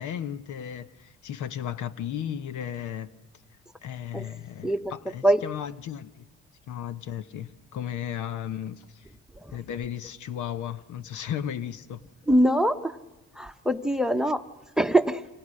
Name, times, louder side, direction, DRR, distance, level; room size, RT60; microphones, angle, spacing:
voice 1, 0.0-3.1 3.8-6.3 6.7-9.0 9.5-12.0, left 9 dB, 80° left, 0.9 m, -35 dB
voice 2, 12.3-13.0 13.4-14.4 14.8-15.2, right 1 dB, ahead, 0.9 m, -23 dB
28.0 x 25.5 x 6.4 m
cardioid pair, 90°, 30 cm